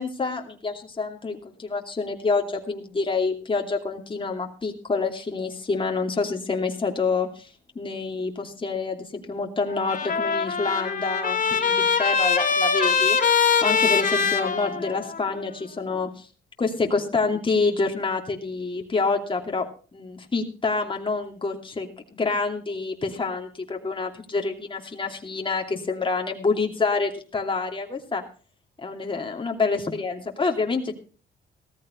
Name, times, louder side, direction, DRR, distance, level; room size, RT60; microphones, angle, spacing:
voice 1, 0.0-7.5 7.7-13.2 13.6-16.3 16.6-19.6 19.9-28.2 28.8-30.9, left 4 dB, 25° left, 3 dB, 2.7 m, -27 dB
Trumpet, 9.7-15.3, left 6 dB, 40° left, 3.3 m, -23 dB
17.0 x 14.0 x 3.2 m, 0.38 s
cardioid pair, 90°, 20 cm